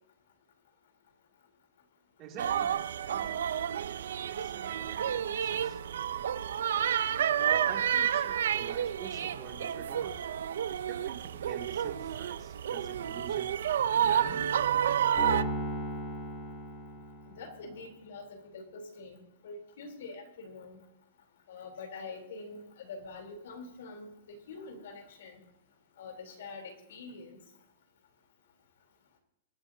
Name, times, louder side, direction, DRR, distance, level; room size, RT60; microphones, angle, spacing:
voice 1, 2.2-3.4 4.2-5.8 7.3-10.2 10.7-13.6 14.0-14.6, right 6 dB, 25° right, 1 dB, 2.4 m, -46 dB
sound 1, 2.4-15.4, right 9 dB, 80° right, 0.5 m, -30 dB
Piano, 15.2-17.6, equal, 30° left, 4.4 m, -36 dB
voice 2, 17.4-20.8 21.5-25.4 26.0-27.4, left 3 dB, 65° left, 4 dB, 3.4 m, -45 dB
24.5 x 10.5 x 2.7 m, 0.89 s
supercardioid pair, 175°, 0 cm